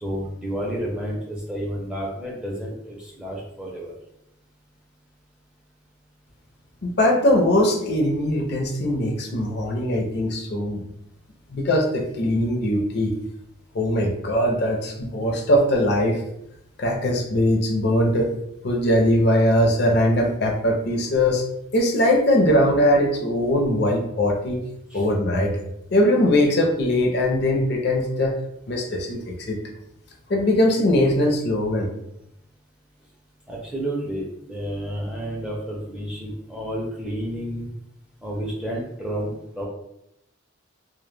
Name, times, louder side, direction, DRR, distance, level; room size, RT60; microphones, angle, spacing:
voice 1, 0.0-3.9 24.9-25.1 33.5-37.7 38.2-39.7, equal, 5° right, -4 dB, 0.4 m, -30 dB
voice 2, 6.8-10.8 11.5-13.1 13.7-16.2 16.8-18.3 18.6-21.4 21.7-24.6 24.9-25.5 25.9-28.3 28.7-29.6 30.3-31.9, left 1 dB, 50° left, 1 dB, 0.4 m, -21 dB
2.1 x 2.1 x 3.1 m, 0.80 s
head